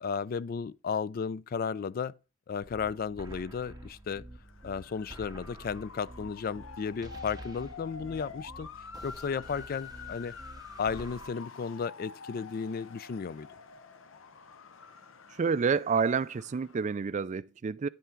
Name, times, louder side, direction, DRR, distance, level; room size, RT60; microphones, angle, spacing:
voice 1, 0.0-2.2 2.5-4.2 4.6-8.7 9.0-10.4 10.8-13.5, left 6 dB, 45° left, 0.3 m, -34 dB
sound 1, 2.6-11.3, right 1 dB, 20° right, 0.8 m, -48 dB
Motor vehicle (road) / Siren, 4.4-17.1, left 5 dB, 70° left, 0.7 m, -48 dB
voice 2, 15.4-17.9, right 5 dB, 35° right, 0.3 m, -28 dB
10.5 x 5.7 x 3.7 m
head